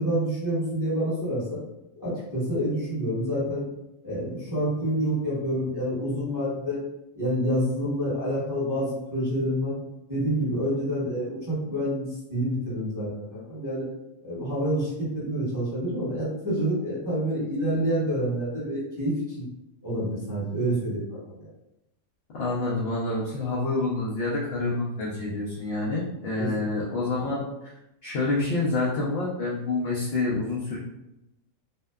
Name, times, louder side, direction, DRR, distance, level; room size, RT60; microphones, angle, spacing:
voice 1, 0.0-1.6 2.0-3.6 4.0-6.8 7.1-9.7 10.1-13.8 14.2-19.4 19.8-21.5 26.4-26.7, equal, 15° right, -11 dB, 0.9 m, -28 dB
voice 2, 22.3-27.7 28.0-30.8, left 2 dB, 65° left, -6 dB, 0.6 m, -28 dB
2.7 x 2.1 x 2.2 m, 0.90 s
omnidirectional pair, 1.5 m